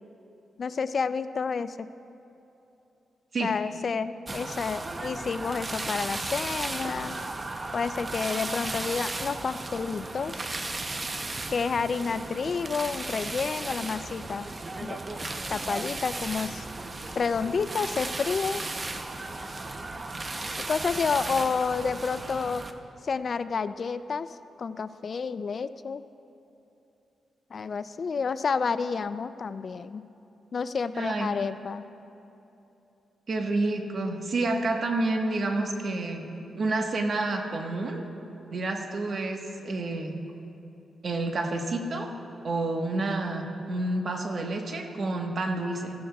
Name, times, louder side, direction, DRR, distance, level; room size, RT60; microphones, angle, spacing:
voice 1, 0.6-1.9 3.4-7.2 7.7-10.4 11.5-14.5 14.8-15.0 15.5-16.7 17.2-18.6 20.7-22.7 23.0-26.0 27.5-30.0 30.5-31.8, left 5 dB, 50° left, 13 dB, 0.3 m, -30 dB
sound 1, 4.3-22.7, right 2 dB, 30° right, 0.7 m, -35 dB
voice 2, 30.9-31.3 33.3-36.2 36.5-38.0 38.5-40.2 41.0-42.1 42.4-45.9, right 2 dB, 55° right, 2 dB, 1.3 m, -29 dB
15.5 x 15.0 x 2.3 m, 2.9 s
cardioid pair, 85°, 0 cm